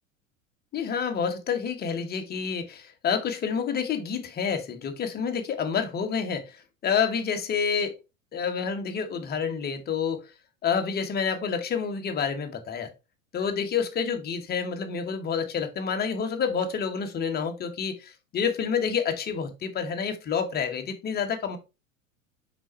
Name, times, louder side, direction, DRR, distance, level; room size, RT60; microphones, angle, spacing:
voice 1, 0.7-8.0 8.3-10.3 10.6-12.9 13.3-21.6, left 6 dB, 25° left, 1.3 m, -28 dB
6.0 x 5.2 x 3.2 m
figure-of-eight pair, 85°, 41 cm